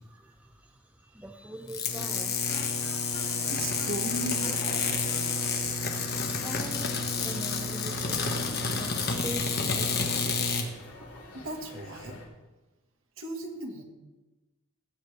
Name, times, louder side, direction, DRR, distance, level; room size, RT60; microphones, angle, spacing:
voice 1, 0.0-3.6 4.4-4.6 5.2-11.5, right 1 dB, 5° right, 3 dB, 0.5 m, -45 dB
sound 1, 1.7-10.7, left 4 dB, 45° left, 1.2 m, -29 dB
Electric guitar, 2.4-8.1, left 1 dB, 30° left, 2.3 m, -48 dB
sound 2, 3.1-12.3, left 2 dB, 80° left, 2.5 m, -48 dB
voice 2, 3.5-5.0 11.4-12.2 13.2-13.8, right 2 dB, 65° right, 3 dB, 1.6 m, -37 dB
17.5 x 7.9 x 3.3 m, 1.1 s
head